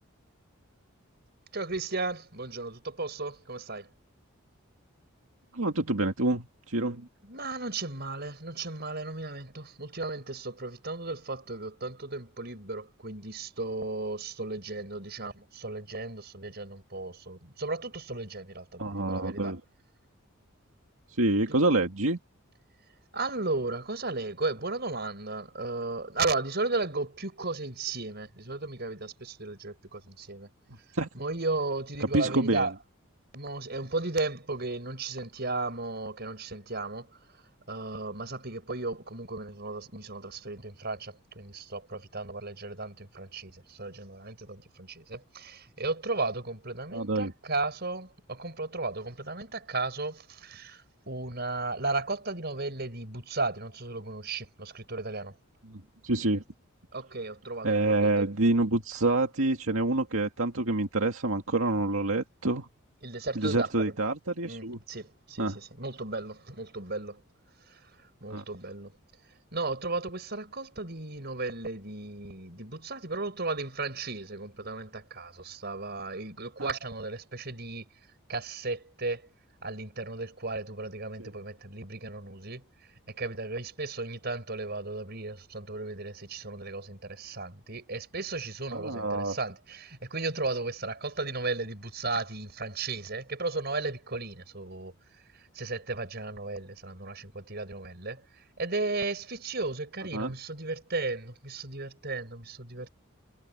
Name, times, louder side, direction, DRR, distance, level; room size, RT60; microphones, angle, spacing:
voice 1, 1.5-3.9 7.3-19.5 21.5-21.6 23.1-30.5 31.2-32.7 33.3-55.3 56.9-58.3 63.0-63.9 64.4-67.2 67.7-69.0 69.5-77.9 78.3-79.2 79.6-82.7 83.1-94.9 95.5-98.2 98.6-102.9, right 3 dB, 50° right, 5.7 m, -35 dB
voice 2, 5.5-7.1 18.8-19.6 21.1-22.2 30.9-31.1 32.1-32.7 46.9-47.3 55.6-56.4 57.6-62.7 63.4-64.8 65.4-65.6 68.3-68.4 76.6-76.7 81.2-81.3 88.7-89.4 100.1-100.3, right 2 dB, 80° right, 2.1 m, -27 dB
head